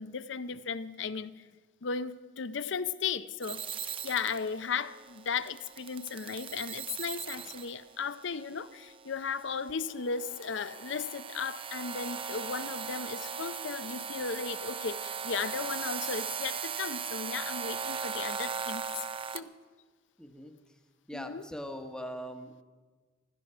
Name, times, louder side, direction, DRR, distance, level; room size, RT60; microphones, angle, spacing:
voice 1, 0.0-1.4 1.8-19.1 19.3-19.5 21.1-21.4, left 5 dB, 60° left, 0.5 m, -36 dB
sound 1, 3.4-19.4, right 6 dB, 25° right, 0.4 m, -39 dB
voice 2, 20.2-20.5 21.1-22.6, equal, 5° left, 0.9 m, -41 dB
15.5 x 13.0 x 5.6 m
head